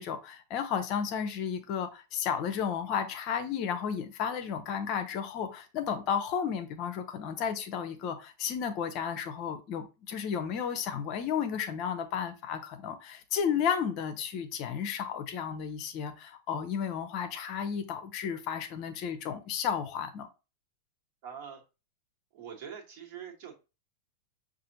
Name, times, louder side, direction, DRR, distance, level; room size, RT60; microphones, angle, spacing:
voice 1, 0.0-20.3, left 7 dB, 40° left, 0.6 m, -33 dB
voice 2, 21.2-21.6 22.3-23.5, right 7 dB, 50° right, 1.5 m, -43 dB
6.1 x 2.5 x 2.8 m
figure-of-eight pair, 90°, 0 cm